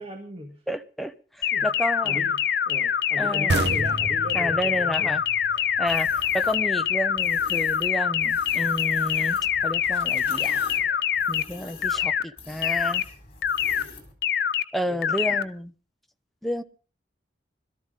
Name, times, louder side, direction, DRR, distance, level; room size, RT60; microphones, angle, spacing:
voice 1, 0.0-0.6 1.5-1.7 2.0-5.2 14.9-15.0 15.3-15.4, equal, 35° right, 4 dB, 1.6 m, -37 dB
voice 2, 0.7-2.2 3.2-3.7 4.3-5.2 5.8-9.4 9.6-10.6 11.3-13.0 14.7-15.7 16.4-16.6, equal, ahead, 8 dB, 0.7 m, -30 dB
sound 1, 1.4-11.4 11.8-12.2 12.6-13.0 13.4-13.8 14.2-14.6 15.0-15.4, left 8 dB, 60° left, 0.7 m, -24 dB
sound 2, 3.5-6.9, right 3 dB, 70° right, 0.9 m, -30 dB
sound 3, 5.9-6.6 7.2-7.9 8.2-14.1, left 4 dB, 35° left, 3.8 m, -44 dB
21.0 x 13.0 x 3.8 m, 0.35 s
head